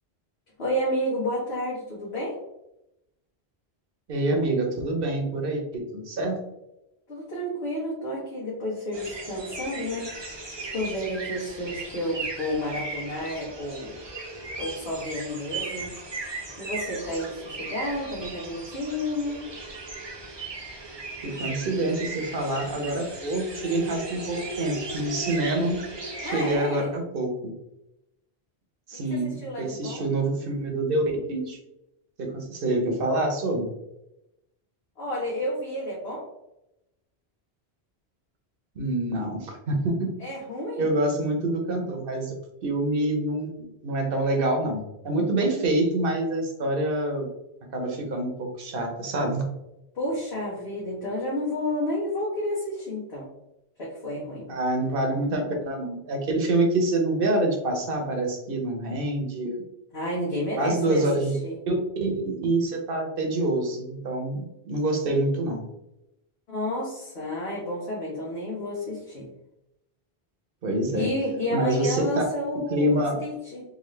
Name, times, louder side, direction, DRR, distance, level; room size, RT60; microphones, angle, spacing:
voice 1, 0.6-2.4 7.1-13.9 14.6-15.9 16.6-19.4 26.2-26.9 29.4-30.1 35.0-36.3 40.2-40.9 49.9-53.3 53.8-54.5 59.9-61.0 61.4-61.6 66.5-69.3 70.9-73.6, left 1 dB, 75° left, -8 dB, 1.4 m, -31 dB
voice 2, 4.1-6.4 21.2-25.8 26.2-27.5 28.9-31.0 31.3-31.6 32.2-33.7 38.8-40.1 40.8-42.3 42.6-47.3 47.6-49.4 54.5-59.6 60.6-61.3 61.7-61.8 62.0-65.6 70.6-71.1 71.5-72.2 72.7-73.2, right 1 dB, 60° right, 2 dB, 1.0 m, -26 dB
sound 1, 8.9-26.5, right 3 dB, 30° right, 0.6 m, -37 dB
3.8 x 2.5 x 3.1 m, 0.88 s
omnidirectional pair, 1.1 m